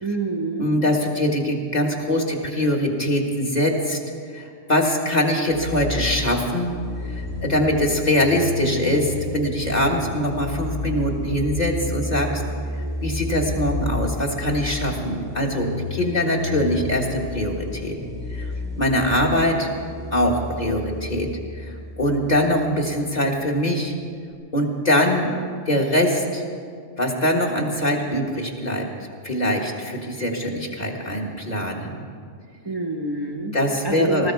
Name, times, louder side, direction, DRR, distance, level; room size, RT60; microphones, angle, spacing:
voice 1, 0.0-0.7 16.0-16.3 32.6-33.6 33.8-34.3, right 2 dB, 25° right, 0 dB, 0.9 m, -27 dB
voice 2, 0.6-4.0 4.3-6.8 7.0-12.4 13.0-18.0 18.3-18.5 18.8-19.7 20.1-23.9 24.5-25.3 25.7-26.4 27.0-28.9 29.2-32.0 33.5-34.3, left 1 dB, 35° left, -1 dB, 1.9 m, -23 dB
sound 1, 5.5-22.9, left 2 dB, 55° left, 2.6 m, -31 dB
19.5 x 14.5 x 4.6 m, 2.1 s
omnidirectional pair, 1.2 m